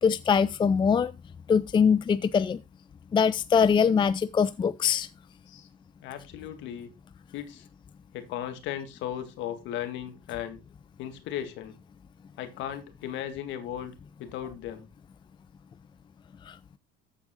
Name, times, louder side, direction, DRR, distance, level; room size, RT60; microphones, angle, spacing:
voice 1, 0.0-1.1 1.5-2.6 3.1-5.1 16.5-16.6, left 6 dB, 20° left, 0.5 m, -23 dB
voice 2, 6.0-6.9 7.3-7.7 8.1-10.6 11.0-11.8 12.4-13.9 14.2-14.9, left 10 dB, 65° left, 1.9 m, -36 dB
14.0 x 4.8 x 3.7 m
hypercardioid pair, 80°, 21 cm